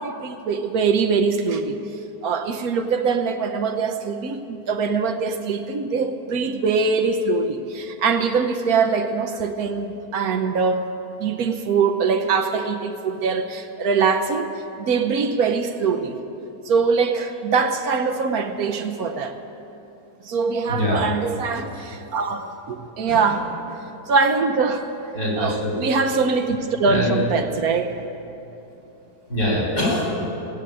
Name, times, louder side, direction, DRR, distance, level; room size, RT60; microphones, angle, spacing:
voice 1, 0.0-1.8 2.2-10.9 11.2-14.5 14.8-16.1 16.6-19.4 20.2-23.5 24.1-24.9 25.4-28.0, right 5 dB, 65° right, 7 dB, 1.2 m, -23 dB
voice 2, 20.7-21.0 23.1-23.2 25.1-25.7 26.9-27.2 29.3-30.1, left 1 dB, 70° left, -4 dB, 4.7 m, -23 dB
17.5 x 8.0 x 8.7 m, 3.0 s
omnidirectional pair, 1.7 m